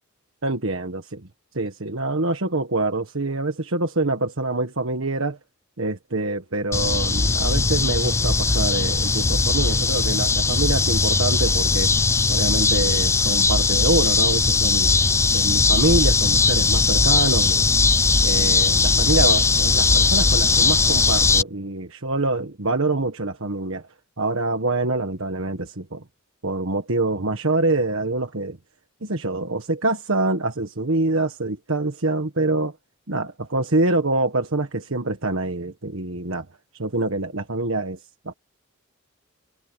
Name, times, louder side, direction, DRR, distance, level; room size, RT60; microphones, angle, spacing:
voice 1, 0.4-1.3 1.5-5.4 5.8-11.9 12.3-14.9 15.3-17.6 18.2-23.8 24.2-26.0 26.4-28.6 29.0-32.7 33.1-36.4 36.8-38.0 38.2-38.3, right 2 dB, 70° right, 1.6 m, -25 dB
sound 1, 6.7-21.4, left 4 dB, 15° left, 0.4 m, -19 dB
head